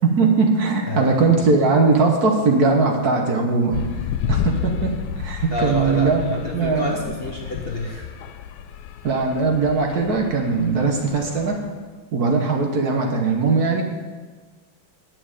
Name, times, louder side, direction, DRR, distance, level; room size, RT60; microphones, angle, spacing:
voice 1, 0.0-3.8 4.3-6.2 6.5-7.0 9.0-11.6 12.1-13.8, right 4 dB, 55° right, 2 dB, 1.5 m, -20 dB
voice 2, 0.9-1.4 5.5-8.1, left 1 dB, 40° left, -1 dB, 1.0 m, -28 dB
sound 1, 3.7-11.8, left 9 dB, 85° left, 1.4 m, -31 dB
9.6 x 6.3 x 8.2 m, 1.4 s
omnidirectional pair, 2.2 m